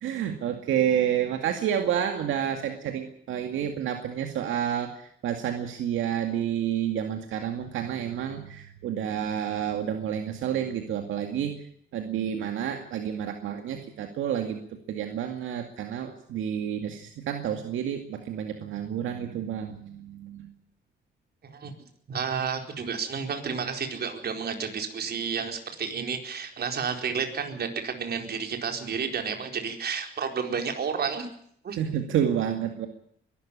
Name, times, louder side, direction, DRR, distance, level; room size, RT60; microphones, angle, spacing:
voice 1, 0.0-11.6 11.9-14.6 14.9-20.5 31.8-32.9, right 9 dB, 80° right, 5 dB, 2.3 m, -29 dB
voice 2, 22.1-31.3 31.6-31.8, right 6 dB, 55° right, 5 dB, 4.5 m, -31 dB
22.5 x 13.0 x 10.0 m, 0.66 s
cardioid pair, 90°, 20 cm